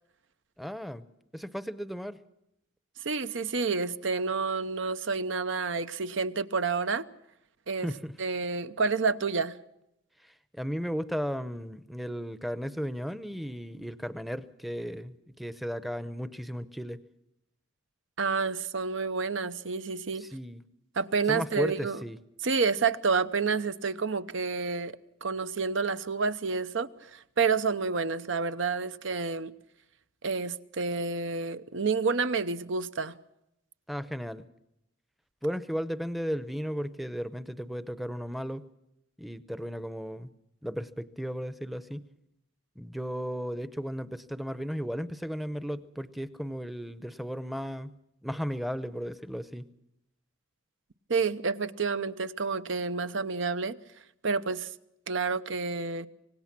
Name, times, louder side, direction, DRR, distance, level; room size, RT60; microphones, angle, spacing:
voice 1, 0.6-1.0 1.3-2.2 7.8-8.1 10.2-17.0 20.2-20.6 21.3-22.2 33.9-34.4 35.4-38.7 39.2-40.3 40.6-42.0 42.8-47.9 48.2-49.7, equal, ahead, 0.7 m, -35 dB
voice 2, 3.0-7.1 7.7-7.9 8.2-9.6 18.2-20.2 21.0-22.0 22.4-25.0 25.2-29.5 30.2-33.1 51.1-53.8 54.2-54.7 55.1-56.1, right 4 dB, 70° right, 0.8 m, -29 dB
25.5 x 19.0 x 6.0 m
head